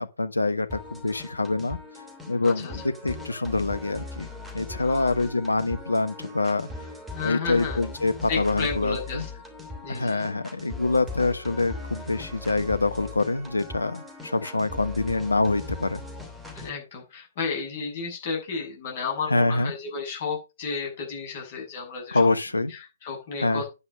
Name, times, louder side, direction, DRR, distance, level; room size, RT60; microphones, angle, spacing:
voice 1, 0.0-1.8 2.3-4.3 4.5-6.7 7.2-9.2 9.9-16.0 19.3-19.7 22.1-22.7 23.4-23.6, left 3 dB, 75° left, 1.1 m, -25 dB
sound 1, 0.7-16.7, left 3 dB, 5° right, 2.9 m, -39 dB
voice 2, 4.8-5.1 7.1-7.8 8.3-9.3 9.8-10.2 16.5-22.2 22.7-23.7, left 5 dB, 35° left, 6.5 m, -32 dB
9.8 x 8.3 x 5.3 m
figure-of-eight pair, 130°, 0 cm